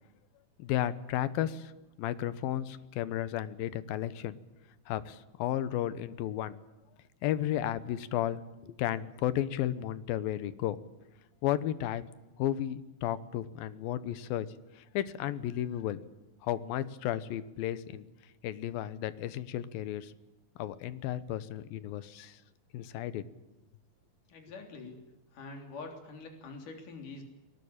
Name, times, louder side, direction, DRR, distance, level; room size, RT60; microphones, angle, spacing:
voice 1, 0.6-1.7 2.0-4.4 4.9-6.6 7.2-10.8 11.4-12.0 12.4-14.5 14.7-16.0 16.4-18.1 18.4-20.1 20.6-22.4 22.7-23.3, left 12 dB, 80° left, 15 dB, 2.8 m, -33 dB
voice 2, 24.3-25.0 25.3-27.2, left 3 dB, 60° left, 4 dB, 4.8 m, -45 dB
22.0 x 19.0 x 8.8 m, 1.0 s
omnidirectional pair, 4.2 m